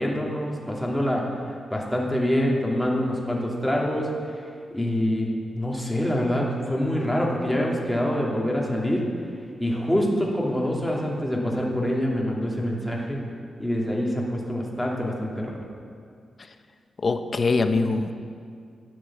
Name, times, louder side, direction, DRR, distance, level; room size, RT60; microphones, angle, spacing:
voice 1, 0.0-4.1 4.7-9.1 9.6-13.2 13.6-15.6, equal, 5° left, -2 dB, 2.7 m, -25 dB
voice 2, 17.0-18.2, left 3 dB, 45° left, 8 dB, 0.9 m, -23 dB
12.0 x 9.3 x 7.4 m, 2.2 s
cardioid pair, 85°, 0 cm